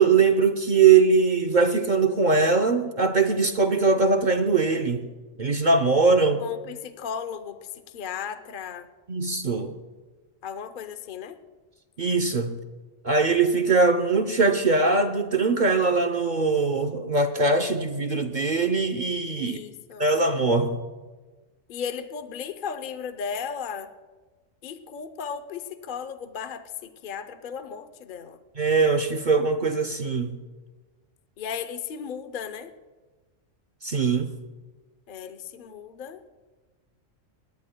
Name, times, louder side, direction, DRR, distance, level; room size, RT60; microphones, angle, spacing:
voice 1, 0.0-5.1 5.4-6.4 9.1-9.8 12.0-12.5 13.0-19.6 20.0-20.8 28.6-30.4 33.8-34.3, right 4 dB, 45° right, 6 dB, 0.7 m, -21 dB
voice 2, 6.4-8.9 10.4-11.4 19.4-20.0 21.7-23.9 24.6-28.4 31.4-32.7 35.1-36.2, left 7 dB, 50° left, 8 dB, 0.7 m, -35 dB
20.0 x 18.0 x 2.2 m, 1.3 s
omnidirectional pair, 1.3 m